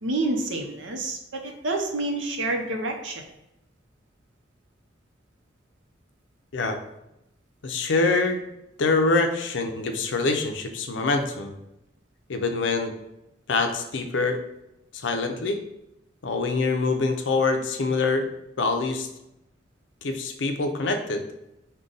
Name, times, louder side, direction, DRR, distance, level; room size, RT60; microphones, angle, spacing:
voice 1, 0.0-3.2, right 2 dB, 85° right, 3 dB, 0.7 m, -28 dB
voice 2, 7.6-8.4 8.8-11.5 12.3-12.9 13.5-14.4 14.9-15.6 16.2-18.3 18.6-19.1 20.0-21.3, left 3 dB, 75° left, 5 dB, 0.5 m, -25 dB
5.1 x 2.2 x 3.9 m, 0.86 s
head